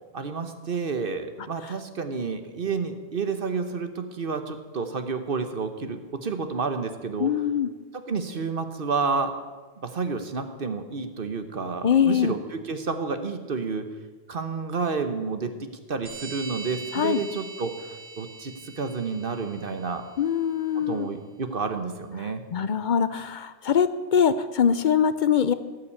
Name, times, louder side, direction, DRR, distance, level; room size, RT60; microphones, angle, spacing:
voice 1, 0.1-7.3 7.9-9.3 9.8-13.9 14.3-20.1 20.7-22.4, right 4 dB, 45° right, 8 dB, 1.1 m, -30 dB
voice 2, 7.2-7.7 11.8-12.3 16.9-17.2 20.2-21.1 22.5-25.5, left 8 dB, 60° left, 13 dB, 0.5 m, -23 dB
sound 1, 16.1-20.3, right 3 dB, 80° right, 2.5 m, -42 dB
17.0 x 5.8 x 8.3 m, 1.3 s
omnidirectional pair, 1.3 m